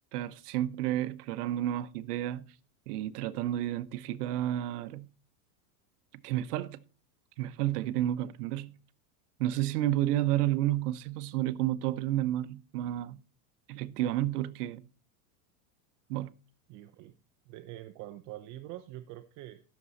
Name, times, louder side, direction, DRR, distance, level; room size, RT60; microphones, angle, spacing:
voice 1, 0.1-2.5 2.9-5.1 6.2-6.8 7.4-8.7 9.4-13.2 13.7-14.8 16.1-16.3, right 13 dB, 70° right, 0.9 m, -31 dB
voice 2, 16.7-17.1 17.5-19.6, right 15 dB, 40° right, 0.7 m, -45 dB
12.5 x 7.1 x 4.1 m
supercardioid pair, 145°, 47 cm